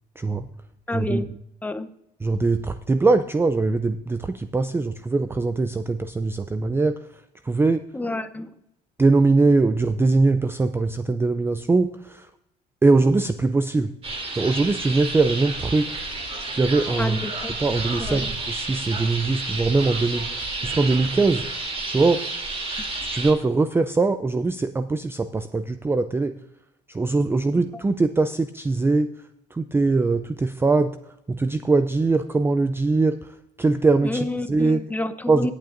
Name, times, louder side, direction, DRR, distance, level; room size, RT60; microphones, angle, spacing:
voice 1, 0.2-0.5 0.9-1.3 2.2-7.0 7.4-7.8 9.0-12.3 12.8-13.9 14.4-15.9 16.5-17.2 17.6-21.5 21.9-22.2 23.0-26.3 26.9-29.1 29.5-30.9 31.3-33.2 33.6-34.8 35.3-35.5, right 3 dB, 15° right, 10 dB, 0.4 m, -21 dB
voice 2, 0.9-1.3 1.6-1.9 7.9-8.5 17.0-17.5 18.0-18.2 27.5-27.6 34.0-35.5, left 2 dB, 10° left, 10 dB, 0.8 m, -29 dB
sound 1, 14.0-23.3, right 2 dB, 35° right, 2.8 m, -31 dB
18.0 x 8.3 x 2.6 m, 0.79 s
cardioid pair, 110°, 17 cm